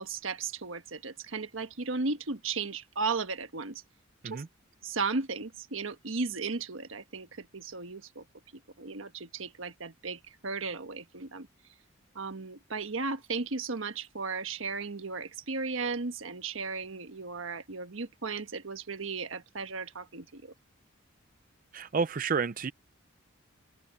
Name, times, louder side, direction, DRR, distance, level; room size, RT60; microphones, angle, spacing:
voice 1, 0.0-3.8 4.2-4.4 4.8-8.2 8.8-11.5 12.1-20.5, right 4 dB, 80° right, 1.4 m, -35 dB
voice 2, 21.7-22.7, right 5 dB, 45° right, 0.5 m, -30 dB
open air
head